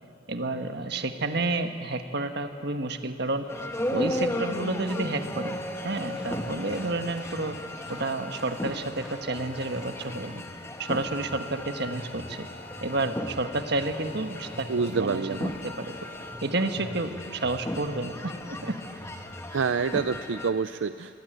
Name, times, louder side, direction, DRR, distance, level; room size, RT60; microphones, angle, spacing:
voice 1, 0.3-3.5 3.9-5.6 5.8-7.6 7.9-10.4 10.8-12.5 12.8-15.9 16.4-18.7, right 2 dB, 60° right, 7 dB, 1.4 m, -30 dB
sound 1, 3.5-20.5, left 1 dB, 15° left, 1.4 m, -36 dB
sound 2, 4.9-7.3 7.9-8.9 9.3-10.4 10.8-13.2 13.8-14.9 15.3-16.3, left 4 dB, 45° left, 2.2 m, -49 dB
sound 3, 5.7-11.2, equal, 5° right, 2.3 m, -53 dB
voice 2, 14.7-15.4 19.5-21.2, right 5 dB, 80° right, 12 dB, 0.5 m, -27 dB
25.0 x 21.0 x 9.2 m, 2.8 s
head